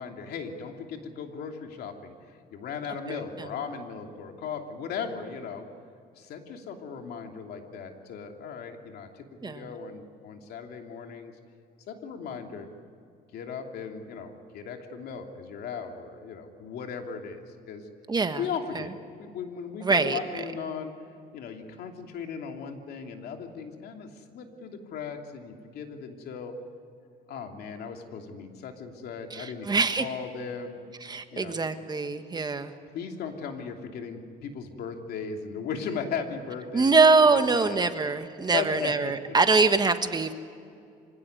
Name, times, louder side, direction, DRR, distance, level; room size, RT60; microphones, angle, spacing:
voice 1, 0.0-5.7 6.2-11.3 11.9-12.7 13.3-17.9 18.4-18.9 19.2-20.9 21.3-26.6 27.3-30.8 31.3-31.5 32.9-36.9 37.2-37.8 38.5-39.4, left 6 dB, 70° left, 4 dB, 3.0 m, -37 dB
voice 2, 3.1-3.5 9.4-9.7 18.1-18.4 18.7-18.9 19.8-20.2 29.3-30.1 31.0-32.7 36.7-40.3, right 4 dB, 25° right, 9 dB, 1.4 m, -24 dB
25.5 x 17.0 x 9.6 m, 2.4 s
cardioid pair, 110°, 17 cm